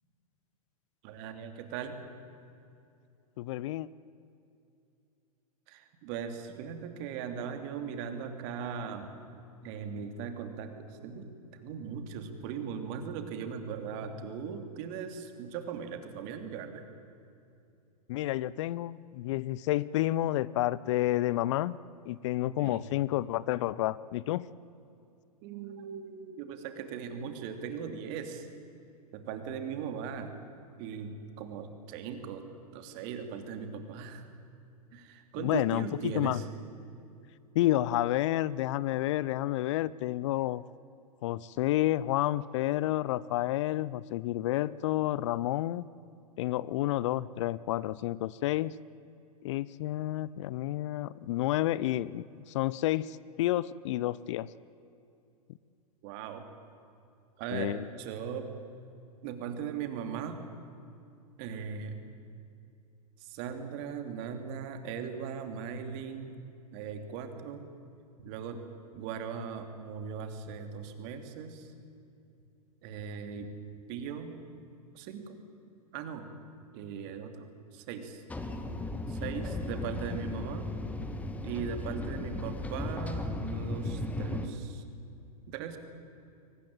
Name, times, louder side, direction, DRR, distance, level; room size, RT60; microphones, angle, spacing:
voice 1, 1.0-2.0 5.7-9.1 9.6-16.8 22.6-22.8 25.4-28.5 29.1-30.3 30.8-32.5 32.7-34.2 34.9-36.4 56.0-56.4 57.4-58.6 59.2-60.4 61.4-62.0 63.2-66.4 66.7-67.7 68.2-68.6 68.9-71.7 72.8-73.5 73.9-74.4 74.9-75.4 75.9-76.2 76.7-78.2 79.1-80.7 81.4-84.8 85.5-85.8, right 7 dB, 45° right, 7 dB, 3.0 m, -39 dB
voice 2, 3.4-3.9 18.1-21.8 22.1-24.5 35.4-36.4 37.5-40.6 41.2-45.9 46.4-48.7 49.4-54.5 57.5-57.9, left 15 dB, 50° left, 20 dB, 0.6 m, -30 dB
sound 1, 78.3-84.5, left 2 dB, 5° left, 1.7 m, -36 dB
23.0 x 19.5 x 9.1 m, 2.6 s
hypercardioid pair, 110°, 20 cm